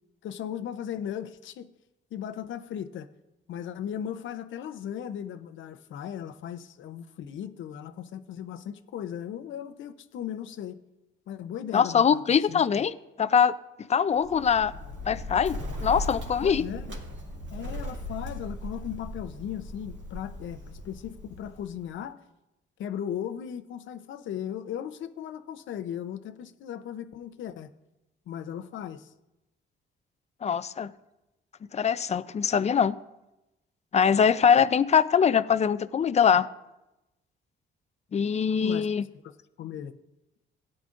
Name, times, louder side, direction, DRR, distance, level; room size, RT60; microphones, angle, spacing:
voice 1, 0.2-1.7 2.1-3.1 3.5-10.8 11.3-12.2 12.5-12.8 16.4-17.0 17.5-22.2 22.8-27.7 28.3-29.1 38.6-38.9 39.2-40.0, left 9 dB, 75° left, 11 dB, 0.7 m, -37 dB
voice 2, 11.7-13.5 13.9-14.7 15.1-16.6 30.4-30.9 31.7-33.0 33.9-36.5 38.1-39.0, left 7 dB, 35° left, 15 dB, 0.5 m, -23 dB
Bird, 14.2-21.9, left 1 dB, 65° right, 2.4 m, -38 dB
17.0 x 10.0 x 2.6 m, 0.96 s
cardioid pair, 90°, 20 cm